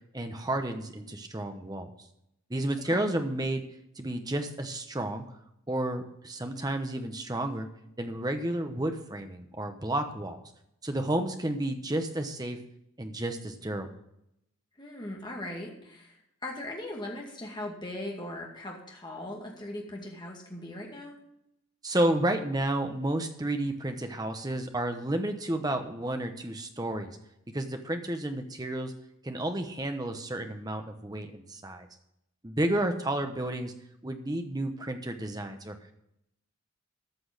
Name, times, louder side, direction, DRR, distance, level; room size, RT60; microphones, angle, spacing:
voice 1, 0.1-1.9 2.5-3.6 4.0-5.2 5.7-7.7 8.0-10.4 10.8-12.6 13.0-13.9 21.8-27.1 27.5-28.9 29.2-31.9 32.4-33.7 34.0-35.7, right 1 dB, 15° right, 6 dB, 1.0 m, -31 dB
voice 2, 14.8-21.2 32.7-33.0, left 1 dB, 20° left, -1 dB, 2.2 m, -39 dB
13.5 x 6.2 x 6.1 m, 0.79 s
head